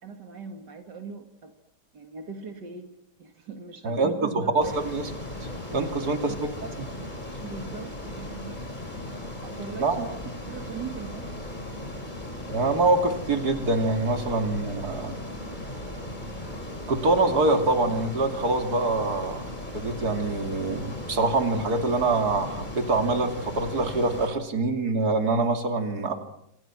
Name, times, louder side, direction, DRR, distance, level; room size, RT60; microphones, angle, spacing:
voice 1, 0.0-1.5 1.9-2.9 3.2-4.8 6.3-6.7 7.4-8.6 9.4-11.3, right 5 dB, 85° right, 5 dB, 2.8 m, -39 dB
voice 2, 3.8-5.0 5.7-6.3 9.8-10.0 12.5-15.2 16.9-19.5 19.7-26.1, right 2 dB, 65° right, 5 dB, 3.3 m, -25 dB
Ocean, 4.6-24.3, left 1 dB, 25° left, 5.2 m, -37 dB
28.0 x 28.0 x 6.2 m, 0.77 s
omnidirectional pair, 1.8 m